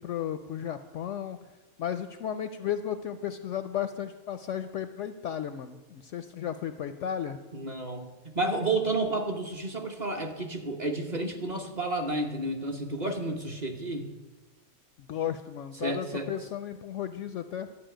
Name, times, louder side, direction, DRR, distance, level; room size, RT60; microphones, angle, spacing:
voice 1, 0.0-1.4 1.8-7.4 15.1-17.7, left 9 dB, 65° left, 10 dB, 0.8 m, -34 dB
voice 2, 7.5-14.1 15.8-16.3, right 2 dB, 35° right, 2 dB, 0.9 m, -31 dB
12.0 x 5.4 x 8.9 m, 1.2 s
omnidirectional pair, 1.6 m